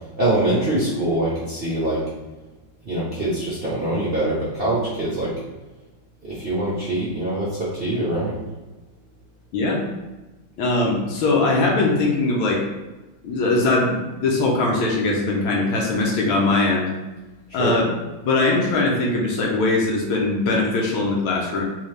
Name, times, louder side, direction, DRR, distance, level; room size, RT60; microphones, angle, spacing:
voice 1, 0.2-2.0 2.8-5.3 6.2-8.3 17.5-17.7, right 1 dB, 55° right, -8 dB, 0.6 m, -24 dB
voice 2, 10.6-12.6 13.2-16.9 17.5-17.9 18.2-21.6, left 2 dB, 90° left, -1 dB, 1.5 m, -21 dB
4.0 x 2.8 x 3.2 m, 1.1 s
omnidirectional pair, 2.2 m